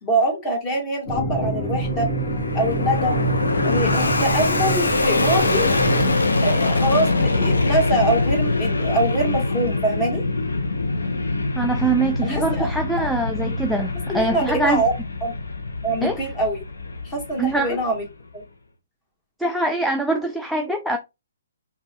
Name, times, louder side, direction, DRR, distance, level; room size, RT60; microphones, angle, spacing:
voice 1, 0.0-2.1 2.5-3.3 3.6-5.7 6.4-10.2 12.2-12.7 14.1-14.9 15.2-15.3 15.8-16.6 17.0-18.0 18.3-18.4, right 1 dB, 20° left, 1.9 m, -24 dB
sound 1, 1.1-6.1, right 2 dB, 40° left, 1.8 m, -26 dB
Fixed-wing aircraft airplane, 1.5-18.1, left 2 dB, 75° left, 1.0 m, -24 dB
voice 2, 11.5-14.8 16.0-16.2 17.4-17.8 19.4-21.0, right 2 dB, ahead, 0.4 m, -23 dB
5.3 x 2.7 x 2.4 m
figure-of-eight pair, 130°, 0 cm